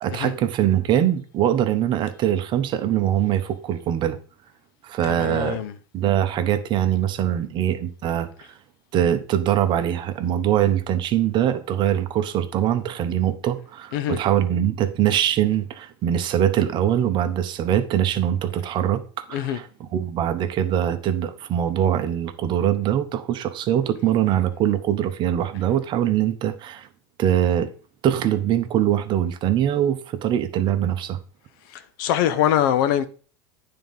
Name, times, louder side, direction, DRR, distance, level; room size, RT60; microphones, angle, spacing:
voice 1, 0.0-4.2 4.8-5.6 5.9-8.5 8.9-19.0 19.3-26.9 27.2-27.7 28.0-31.2, right 10 dB, 40° right, 1.0 m, -22 dB
voice 2, 5.0-5.7 13.9-14.2 19.3-19.6 31.7-33.1, left 10 dB, 65° left, 0.8 m, -23 dB
9.2 x 3.9 x 5.3 m
supercardioid pair, 115°, 12 cm